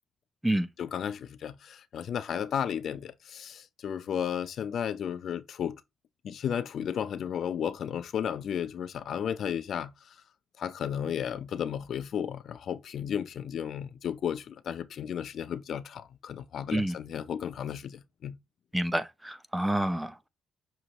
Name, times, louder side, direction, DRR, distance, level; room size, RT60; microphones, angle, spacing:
voice 1, 0.8-5.8 6.2-10.1 10.6-18.4, left 8 dB, 65° left, 0.5 m, -34 dB
voice 2, 18.7-20.3, right 1 dB, 10° right, 0.6 m, -28 dB
6.3 x 2.6 x 2.9 m
cardioid pair, 90°, 0 cm